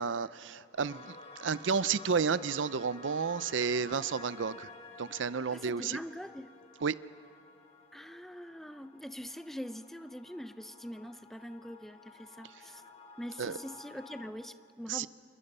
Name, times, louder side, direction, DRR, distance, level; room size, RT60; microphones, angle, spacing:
voice 1, 0.0-4.7 5.0-6.0 6.8-7.0 13.4-13.6 14.9-15.1, right 5 dB, 90° right, 16 dB, 0.6 m, -31 dB
sound 1, 0.8-14.3, left 3 dB, 35° left, 1.8 m, -52 dB
voice 2, 5.5-6.5 7.9-12.8 13.2-15.1, equal, ahead, 11 dB, 0.6 m, -43 dB
29.0 x 28.5 x 5.5 m, 2.4 s
head